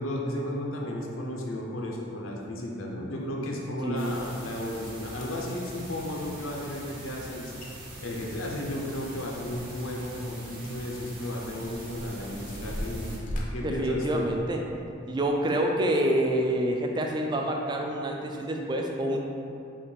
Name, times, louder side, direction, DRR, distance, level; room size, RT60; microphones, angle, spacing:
voice 1, 0.0-7.5 8.0-13.1 13.5-14.3, left 1 dB, 80° left, -2 dB, 0.7 m, -34 dB
voice 2, 3.8-4.1 13.6-14.6 15.1-19.2, right 1 dB, 20° right, 1 dB, 0.3 m, -27 dB
sound 1, 4.0-13.2, right 1 dB, 45° right, 0.9 m, -43 dB
sound 2, 5.2-5.6 7.3-7.4 7.6-7.7 8.1-9.9 10.2-10.3 11.0-14.8 15.4-15.6 16.2-16.3, equal, 40° left, 0.5 m, -38 dB
5.6 x 2.4 x 3.3 m, 2.6 s
head